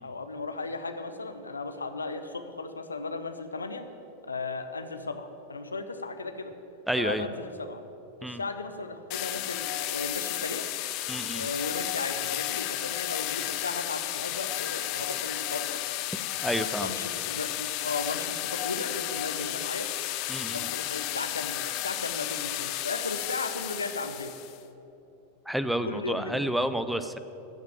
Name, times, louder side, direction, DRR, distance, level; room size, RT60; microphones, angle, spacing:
voice 1, 0.0-3.8 4.2-6.5 7.0-7.8 8.2-10.7 11.3-15.8 16.8-19.9 20.5-24.3 25.8-26.4, left 3 dB, 75° left, 8 dB, 0.9 m, -36 dB
voice 2, 6.9-7.3 8.2-8.4 11.1-11.5 16.4-16.9 20.3-20.7 25.5-27.2, right 1 dB, ahead, 11 dB, 0.6 m, -30 dB
sound 1, 9.1-24.6, left 15 dB, 45° left, 0.6 m, -33 dB
14.0 x 6.0 x 8.8 m, 2.9 s
figure-of-eight pair, 90°, 0 cm